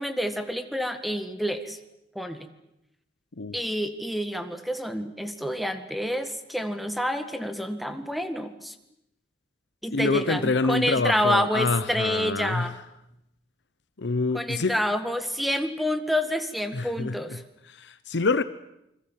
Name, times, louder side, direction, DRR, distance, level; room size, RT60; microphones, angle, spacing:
voice 1, 0.0-1.8 2.2-2.4 3.5-8.7 9.8-12.7 14.3-17.4, equal, ahead, 1.8 m, -28 dB
voice 2, 9.9-12.7 14.0-14.8 16.7-17.4 17.7-18.4, left 3 dB, 85° left, 0.9 m, -26 dB
28.5 x 22.0 x 7.5 m
head